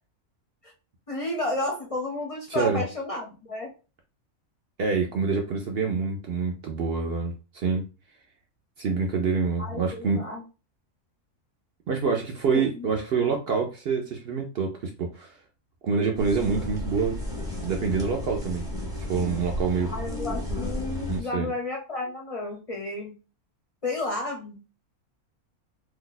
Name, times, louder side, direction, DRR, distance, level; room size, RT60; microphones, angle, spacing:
voice 1, 1.1-3.7 9.6-10.4 12.5-12.9 19.9-23.1 23.8-24.7, left 2 dB, 40° left, 0 dB, 0.5 m, -32 dB
voice 2, 2.5-2.8 4.8-7.8 8.8-10.3 11.9-15.3 15.8-17.2 17.6-18.7 19.1-19.9 21.1-21.5, right 5 dB, 65° right, 2 dB, 0.6 m, -26 dB
sound 1, 16.2-21.2, left 1 dB, 5° right, 0.7 m, -33 dB
2.7 x 2.2 x 3.9 m, 0.32 s
omnidirectional pair, 1.5 m